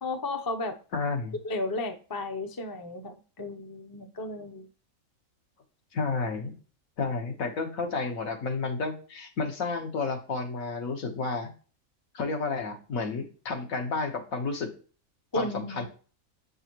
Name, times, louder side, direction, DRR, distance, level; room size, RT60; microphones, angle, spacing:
voice 1, 0.0-0.8 1.4-4.7 15.3-15.8, left 2 dB, 25° left, 0.5 m, -33 dB
voice 2, 0.9-1.3 5.9-6.6 7.0-11.5 12.1-14.7 15.3-15.9, left 4 dB, 75° left, 1.6 m, -31 dB
7.7 x 5.5 x 3.0 m
omnidirectional pair, 1.5 m